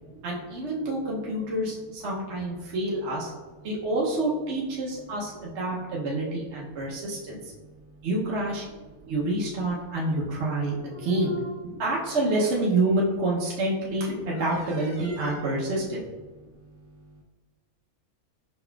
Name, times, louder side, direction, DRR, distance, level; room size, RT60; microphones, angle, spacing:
voice 1, 0.2-3.3 3.6-7.5 8.0-8.7 9.1-16.1, right 2 dB, 55° right, -5 dB, 1.0 m, -28 dB
voice 2, 7.6-8.1 9.0-9.1 11.0-11.1 16.4-17.2, right 4 dB, 80° right, -1 dB, 1.0 m, -51 dB
5.2 x 4.0 x 2.2 m, 1.3 s
omnidirectional pair, 1.5 m